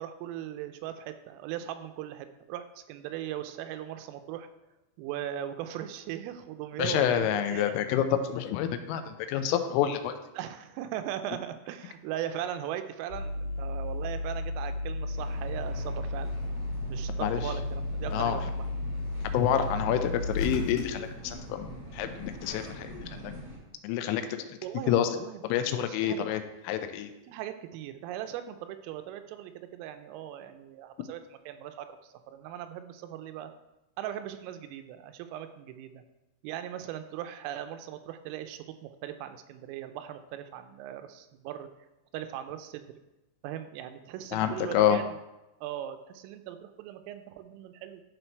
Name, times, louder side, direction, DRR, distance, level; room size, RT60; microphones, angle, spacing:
voice 1, 0.0-4.5 5.0-7.8 10.3-16.3 16.9-18.7 24.6-25.4 25.8-26.3 27.3-31.2 31.5-33.5 34.0-36.0 36.4-41.7 42.1-42.9 43.4-45.2 45.6-48.0, right 11 dB, 90° right, 8 dB, 3.2 m, -39 dB
voice 2, 6.8-10.1 17.2-17.4 18.1-18.4 19.3-23.3 23.8-24.5 24.9-25.1 25.5-26.4 26.7-27.1 44.3-45.0, left 10 dB, 90° left, 9 dB, 3.2 m, -28 dB
sound 1, 13.1-21.2, left 2 dB, 70° left, 2.7 m, -33 dB
sound 2, 15.1-23.6, right 1 dB, 45° right, 3.8 m, -44 dB
11.5 x 4.0 x 4.5 m, 0.97 s
omnidirectional pair, 5.8 m